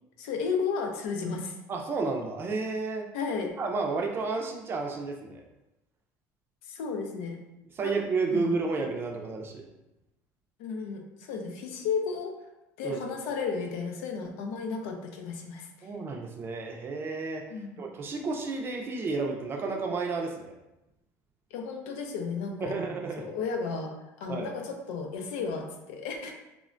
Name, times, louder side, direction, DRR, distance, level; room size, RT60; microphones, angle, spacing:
voice 1, 0.2-1.6 3.1-3.6 6.6-7.4 7.8-7.9 8.3-8.6 10.6-12.3 12.8-15.9 17.5-17.8 21.5-22.8 23.2-26.3, left 5 dB, 90° left, 3 dB, 0.4 m, -33 dB
voice 2, 1.7-3.1 3.6-5.4 7.8-9.7 12.8-13.0 15.8-17.4 17.8-20.5 22.6-23.2 24.3-24.5, right 4 dB, 30° right, 2 dB, 0.4 m, -31 dB
3.1 x 2.1 x 2.4 m, 0.94 s
cardioid pair, 125°, 7 cm